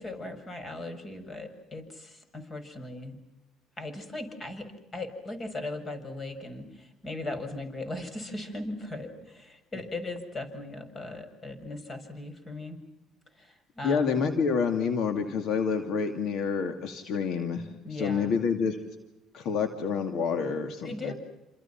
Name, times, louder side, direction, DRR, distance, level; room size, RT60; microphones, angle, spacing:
voice 1, 0.0-3.2 3.8-12.8 13.4-14.2 17.8-18.3 20.8-21.1, left 2 dB, 30° left, 8 dB, 7.2 m, -38 dB
voice 2, 13.8-18.8 19.3-21.1, left 6 dB, 65° left, 6 dB, 2.6 m, -28 dB
29.0 x 28.0 x 6.0 m, 0.90 s
cardioid pair, 100°, 0 cm